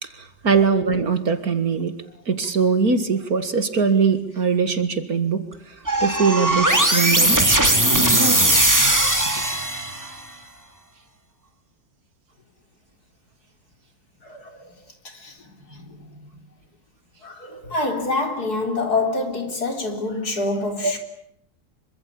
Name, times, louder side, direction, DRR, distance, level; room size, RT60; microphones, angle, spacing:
voice 1, 0.0-2.0 2.3-5.4 6.0-7.8 20.8-20.9, right 5 dB, 55° right, 2.3 m, -21 dB
sound 1, 5.9-10.2, right 1 dB, 10° right, 2.6 m, -18 dB
voice 2, 14.2-14.8 15.0-16.2 17.2-21.0, left 2 dB, 55° left, 4.3 m, -27 dB
26.5 x 24.5 x 8.8 m
omnidirectional pair, 2.0 m